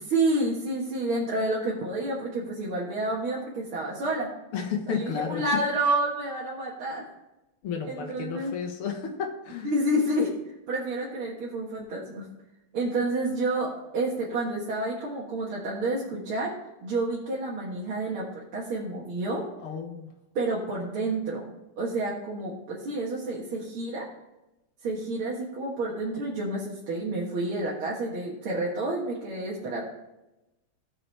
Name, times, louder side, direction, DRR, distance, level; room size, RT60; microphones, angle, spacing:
voice 1, 0.0-4.3 4.9-7.0 7.9-8.5 9.6-10.3 10.7-12.3 12.7-16.5 16.8-19.4 20.4-24.1 24.8-29.8, right 2 dB, 75° right, -5 dB, 2.4 m, -29 dB
voice 2, 4.5-5.4 7.6-9.7 19.6-20.1, left 6 dB, 80° left, 3 dB, 2.2 m, -32 dB
17.0 x 5.9 x 3.4 m, 0.97 s
omnidirectional pair, 2.3 m